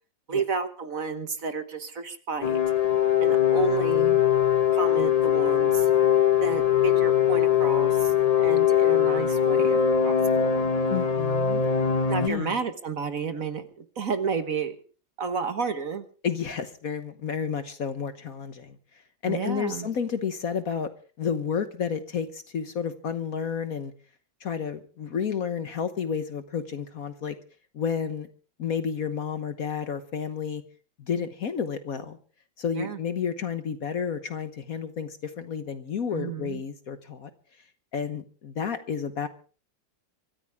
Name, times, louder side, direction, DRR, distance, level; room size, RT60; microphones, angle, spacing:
voice 1, 0.3-2.6 3.2-4.2 4.7-5.9 6.4-9.8 10.0-10.6 12.1-14.8 15.2-16.0 19.3-19.9 32.7-33.0 36.1-36.6, right 5 dB, 50° right, 9 dB, 1.5 m, -31 dB
sound 1, 2.4-12.3, left 9 dB, 30° left, 0.7 m, -22 dB
voice 2, 10.9-11.6 12.2-12.5 16.2-18.7 19.2-20.9 21.2-23.9 24.4-27.3 27.7-28.3 28.6-30.6 31.0-32.2 32.6-37.3 37.9-39.3, left 7 dB, 55° left, 10 dB, 1.4 m, -31 dB
24.5 x 14.0 x 3.5 m, 0.38 s
omnidirectional pair, 2.1 m